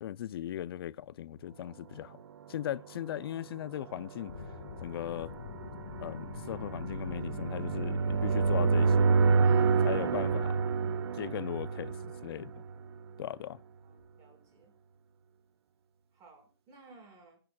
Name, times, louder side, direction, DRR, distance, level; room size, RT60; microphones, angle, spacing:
voice 1, 0.0-2.2 2.5-4.3 4.8-5.3 6.0-9.1 9.8-10.6 11.1-12.5 13.2-13.6, left 11 dB, 60° left, 0.4 m, -38 dB
sound 1, 2.3-13.1, right 5 dB, 70° right, 1.0 m, -29 dB
sound 2, 4.3-9.4, left 7 dB, 80° left, 1.0 m, -44 dB
voice 2, 9.4-9.9 13.8-14.7 16.1-17.4, right 3 dB, 25° right, 5.1 m, -56 dB
22.5 x 8.9 x 2.3 m
hypercardioid pair, 155°, 14 cm